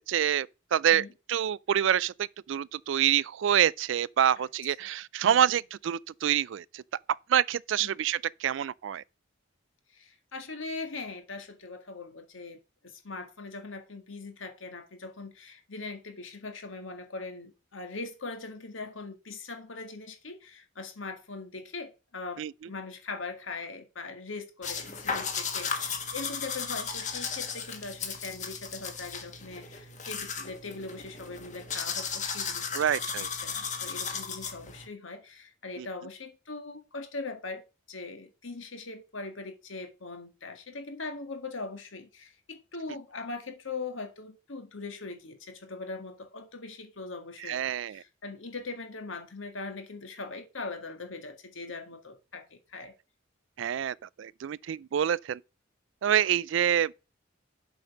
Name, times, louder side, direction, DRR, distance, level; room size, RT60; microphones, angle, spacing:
voice 1, 0.0-6.8 7.3-9.0 22.4-22.5 32.7-33.3 35.8-35.9 47.4-48.0 53.6-55.4 56.0-56.9, right 9 dB, 70° right, 0.3 m, -27 dB
voice 2, 9.9-52.9, left 3 dB, 80° left, 1.8 m, -41 dB
sound 1, 24.6-34.8, left 6 dB, 40° left, 1.4 m, -35 dB
7.6 x 5.3 x 5.3 m
head